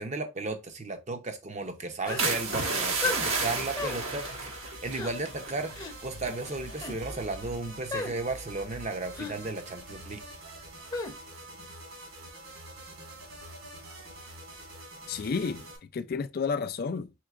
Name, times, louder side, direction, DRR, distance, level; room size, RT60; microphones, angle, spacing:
voice 1, 0.0-5.7 6.0-10.2, right 3 dB, 35° right, 0.6 m, -34 dB
sound 1, 2.1-2.3 3.0-3.3 3.8-4.0 4.9-5.1 5.7-5.9 6.7-7.0 7.9-8.1 9.1-9.4 10.9-11.1, left 3 dB, 20° left, 0.7 m, -33 dB
sound 2, 2.1-15.8, right 1 dB, 65° right, 1.8 m, -45 dB
sound 3, 2.2-6.6 7.0-7.3, right 3 dB, 80° right, 1.2 m, -32 dB
voice 2, 15.1-17.1, left 5 dB, 45° left, 0.3 m, -31 dB
4.5 x 3.8 x 2.4 m
head